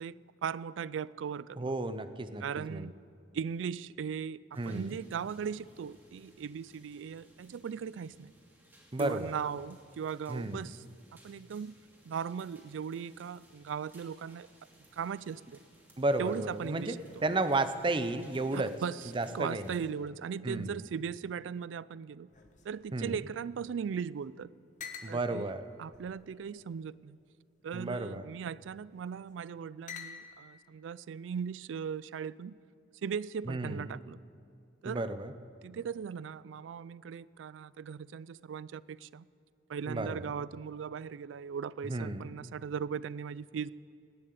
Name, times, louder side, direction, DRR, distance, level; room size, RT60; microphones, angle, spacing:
voice 1, 0.0-1.7 2.4-2.9 3.3-4.4 4.7-8.3 9.0-10.8 11.2-11.7 12.1-14.5 14.9-15.6 16.2-17.0 18.5-19.0 19.3-22.3 22.6-24.5 25.1-25.5 25.8-27.2 27.6-32.5 33.0-34.2 34.8-35.0 35.6-39.3 39.7-43.7, right 7 dB, 80° right, 20 dB, 0.3 m, -38 dB
voice 2, 1.6-2.4 2.7-2.9 4.6-5.0 8.9-9.3 10.3-10.7 16.0-16.9 17.2-18.7 19.1-19.7 20.4-20.8 22.9-23.2 25.0-25.6 27.7-28.2 33.5-34.0 34.8-35.3 39.9-40.3 41.9-42.3, right 2 dB, 25° right, 11 dB, 0.6 m, -33 dB
sound 1, 4.5-19.9, equal, 10° right, 2.7 m, -60 dB
sound 2, 22.3-23.9 24.2-24.3 24.8-25.2 25.9-26.8 27.6-28.0 28.9-29.3 29.9-30.5, left 7 dB, 40° left, 1.2 m, -49 dB
18.5 x 7.3 x 9.4 m, 2.6 s
head